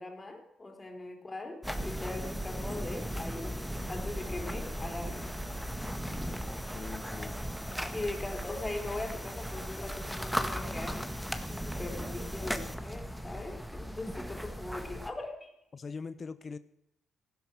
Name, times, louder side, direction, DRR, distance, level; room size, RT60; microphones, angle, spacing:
voice 1, 0.0-3.5 3.9-5.3 7.9-11.1 11.8-15.5, left 2 dB, 20° left, 3 dB, 4.2 m, -40 dB
sound 1, 1.6-15.1, equal, ahead, 1.6 m, -37 dB
sound 2, 3.3-9.0, right 2 dB, 90° right, 6.7 m, -60 dB
voice 2, 4.3-4.7 6.7-7.4 15.7-16.6, left 5 dB, 40° left, 14 dB, 0.8 m, -42 dB
15.0 x 12.0 x 6.4 m, 0.82 s
cardioid pair, 90°, 0 cm